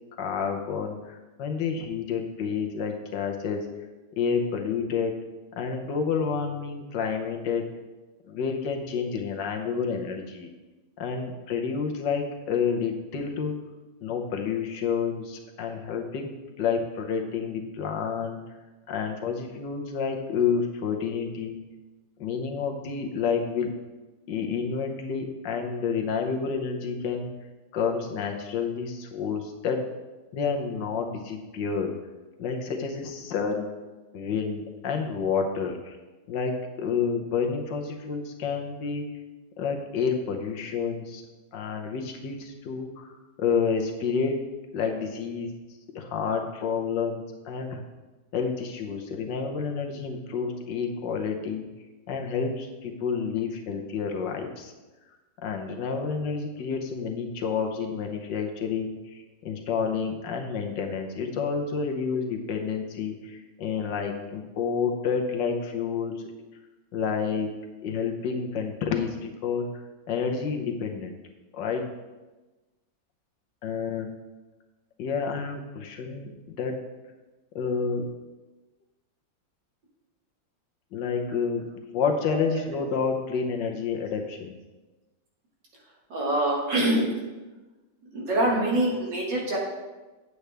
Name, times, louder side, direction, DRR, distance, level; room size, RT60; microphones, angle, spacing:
voice 1, 0.2-3.7 4.2-5.2 5.6-7.7 8.3-10.5 11.0-13.5 14.0-16.3 16.6-18.4 18.9-21.6 22.2-23.7 24.3-27.3 27.7-29.9 30.3-31.9 32.4-33.7 34.1-36.0 36.3-39.0 39.6-41.2 41.5-43.1 43.4-44.5 44.7-45.5 45.9-47.8 48.3-51.7 52.1-54.7 55.4-66.2 66.9-67.5 67.8-71.2 71.5-71.9 73.6-74.1 75.0-76.8 77.5-78.1 80.9-84.6, left 6 dB, 75° left, 3 dB, 1.6 m, -29 dB
voice 2, 86.1-87.1 88.1-89.6, right 1 dB, 70° right, -2 dB, 2.3 m, -24 dB
8.3 x 7.8 x 3.4 m, 1.2 s
omnidirectional pair, 2.0 m